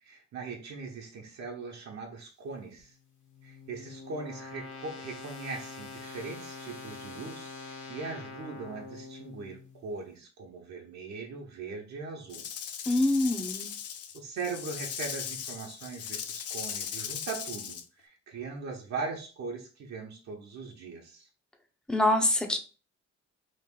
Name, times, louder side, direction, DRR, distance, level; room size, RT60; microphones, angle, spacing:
voice 1, 0.0-2.9 3.4-12.4 14.1-21.3, right 4 dB, 65° right, -1 dB, 1.0 m, -40 dB
sound 1, 2.8-9.9, left 4 dB, 75° left, 1.2 m, -45 dB
Rattle / Rattle (instrument), 12.3-17.8, left 8 dB, 55° left, 0.5 m, -38 dB
voice 2, 12.9-13.7 21.9-22.6, left 1 dB, 5° left, 5 dB, 0.6 m, -25 dB
3.2 x 2.6 x 3.7 m, 0.36 s
cardioid pair, 90°, 30 cm